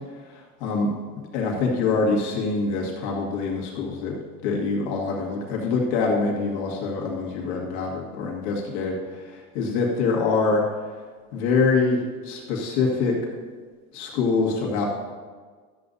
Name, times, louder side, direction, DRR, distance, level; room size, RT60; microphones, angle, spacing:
voice 1, 0.3-0.9 1.3-4.2 4.4-10.6 11.3-13.2 13.9-14.9, left 4 dB, 60° left, -2 dB, 1.9 m, -25 dB
12.5 x 7.9 x 2.7 m, 1.5 s
supercardioid pair, 115°, 41 cm